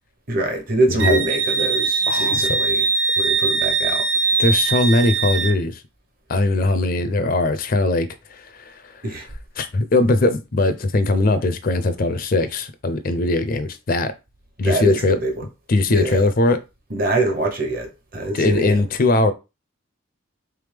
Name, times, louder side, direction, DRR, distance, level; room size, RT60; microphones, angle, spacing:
voice 1, 0.3-2.9 3.2-4.1 9.0-9.3 14.6-15.4 15.9-16.3 16.9-18.8, right 2 dB, 45° right, 0.9 m, -24 dB
Wind instrument woodwind instrument, 1.0-5.6, right 4 dB, 65° right, 0.5 m, -21 dB
voice 2, 2.1-2.6 4.4-5.8 6.3-9.0 9.6-14.1 14.6-15.2 15.7-16.6 18.3-19.3, left 2 dB, 45° left, 0.4 m, -20 dB
3.4 x 3.4 x 3.3 m
head